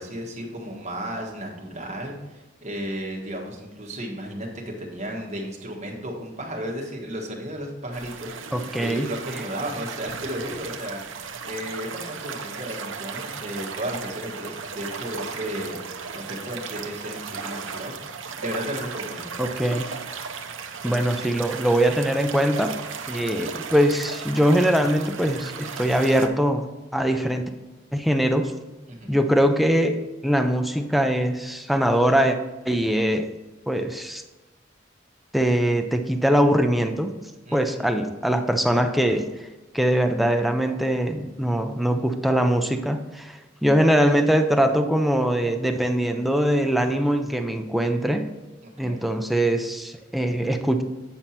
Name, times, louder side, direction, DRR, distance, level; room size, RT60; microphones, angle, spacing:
voice 1, 0.0-11.0 11.5-15.8 16.1-17.9 18.3-19.4 28.9-29.2 37.4-37.9 48.8-49.0, equal, 35° right, 0 dB, 1.5 m, -34 dB
sound 1, 7.9-26.3, right 5 dB, 75° right, 0.7 m, -36 dB
voice 2, 8.5-9.1 19.4-19.9 20.8-22.8 23.1-26.7 26.9-27.5 27.9-28.5 29.1-32.4 32.7-33.3 33.7-34.2 35.3-37.1 37.5-39.3 39.7-48.3 48.8-50.8, equal, ahead, 5 dB, 0.4 m, -22 dB
8.9 x 5.4 x 4.4 m, 1.1 s
head